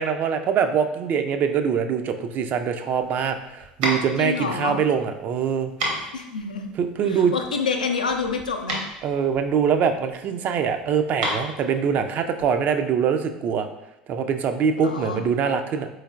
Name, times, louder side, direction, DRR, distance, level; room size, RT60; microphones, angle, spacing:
voice 1, 0.0-5.7 6.8-7.3 9.0-13.7 14.1-15.9, right 7 dB, 45° right, 7 dB, 0.4 m, -23 dB
sound 1, 2.9-12.7, right 1 dB, 70° right, 0.9 m, -32 dB
voice 2, 4.2-4.8 6.1-6.7 7.0-8.8 14.8-15.2, left 5 dB, 80° left, 3 dB, 0.4 m, -27 dB
4.3 x 3.2 x 2.4 m, 0.95 s
figure-of-eight pair, 70°, 4 cm